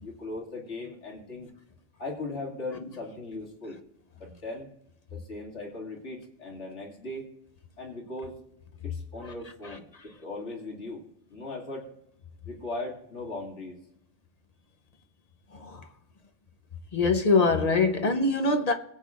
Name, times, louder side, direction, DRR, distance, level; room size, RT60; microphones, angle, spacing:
voice 1, 0.0-1.5 2.0-3.8 4.2-4.7 5.3-7.2 7.8-8.4 8.8-11.0 11.3-11.9 12.5-13.8, left 2 dB, 70° left, 2.6 m, -38 dB
voice 2, 16.9-18.7, left 3 dB, 35° left, 0.8 m, -23 dB
22.0 x 8.1 x 2.4 m
omnidirectional pair, 1.3 m